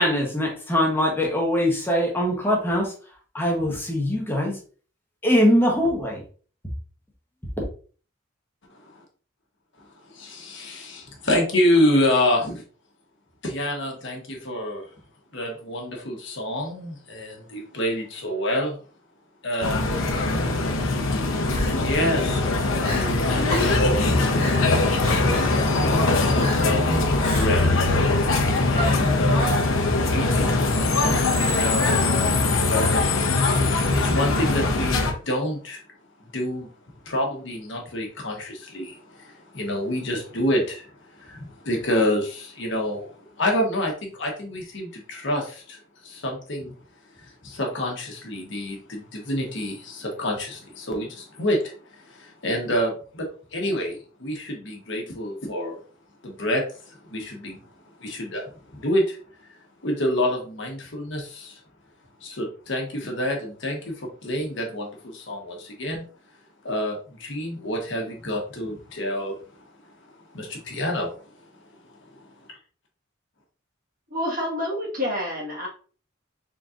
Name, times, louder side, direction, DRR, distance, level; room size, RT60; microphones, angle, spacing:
voice 1, 0.0-2.9 3.3-4.6 5.2-6.2 7.6-7.7, equal, 10° left, 0 dB, 0.9 m, -22 dB
voice 2, 10.1-12.6 13.4-14.9 15.3-18.8 19.4-20.0 21.6-24.6 25.5-26.9 27.2-27.7 28.7-29.5 30.0-30.6 31.4-32.0 32.7-33.2 33.6-35.8 36.3-36.7 37.0-45.8 46.0-46.7 47.2-55.8 56.2-57.6 58.0-58.4 58.7-59.2 59.8-61.6 62.2-66.0 66.6-69.4 70.3-71.1 72.5-72.6, left 1 dB, 65° left, 0 dB, 1.2 m, -28 dB
sound 1, 19.6-35.1, left 2 dB, 85° left, 0.7 m, -21 dB
Crying sobbing, 20.0-20.3 21.5-22.1 22.5-22.6 22.8-23.1 23.5-23.9 24.4-24.7 25.0-25.5 26.4-26.8 27.2-27.7 28.7-29.6 31.1-31.5 31.8-32.4, left 1 dB, 30° left, 1.2 m, -33 dB
voice 3, 74.1-75.7, left 1 dB, 45° right, -4 dB, 1.5 m, -28 dB
4.1 x 3.8 x 2.5 m, 0.40 s
head